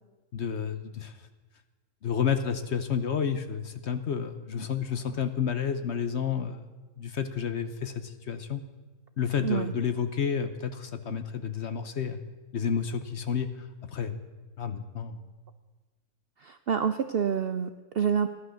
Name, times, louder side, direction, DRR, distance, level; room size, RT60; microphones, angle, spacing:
voice 1, 0.3-1.1 2.0-6.6 7.0-8.6 9.2-12.2 12.5-14.2 14.6-15.2, left 7 dB, 50° left, 9 dB, 1.0 m, -30 dB
voice 2, 16.4-18.3, right 7 dB, 65° right, 9 dB, 0.6 m, -27 dB
16.0 x 11.5 x 6.4 m, 1.3 s
omnidirectional pair, 1.6 m